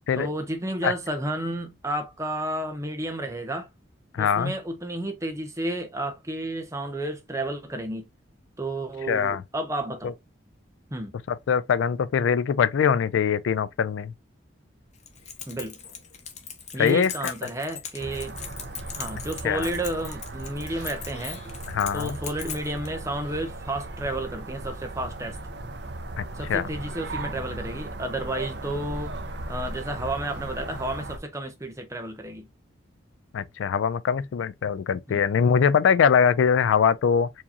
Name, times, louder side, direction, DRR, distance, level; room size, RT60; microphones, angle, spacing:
voice 1, 0.2-3.7 4.2-8.0 8.6-10.2 10.9-11.1 15.5-15.8 16.7-18.3 19.0-21.4 21.9-25.4 26.3-29.1 29.5-32.5 35.1-35.2, right 1 dB, 15° right, 0.7 m, -31 dB
voice 2, 4.1-4.5 9.1-9.4 11.3-14.1 16.8-17.3 19.4-19.7 21.7-22.2 26.2-26.3 26.5-26.7 33.3-37.3, left 7 dB, 75° left, 0.3 m, -22 dB
Keys jangling, 15.0-22.9, left 7 dB, 35° left, 0.7 m, -40 dB
sound 1, 18.0-31.2, right 2 dB, 55° right, 0.5 m, -37 dB
4.5 x 2.9 x 2.6 m
head